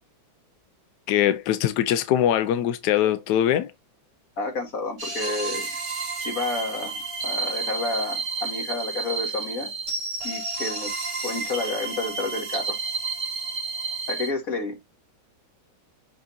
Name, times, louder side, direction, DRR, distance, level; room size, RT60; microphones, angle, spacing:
voice 1, 1.1-3.7, left 11 dB, 75° left, 0.9 m, -22 dB
voice 2, 4.4-5.8 6.2-9.7 10.2-10.9 11.2-12.8 14.1-14.8, left 3 dB, 45° left, 2.3 m, -30 dB
sound 1, 5.0-14.3, right 4 dB, 55° right, 3.1 m, -31 dB
6.2 x 6.0 x 2.6 m
omnidirectional pair, 2.3 m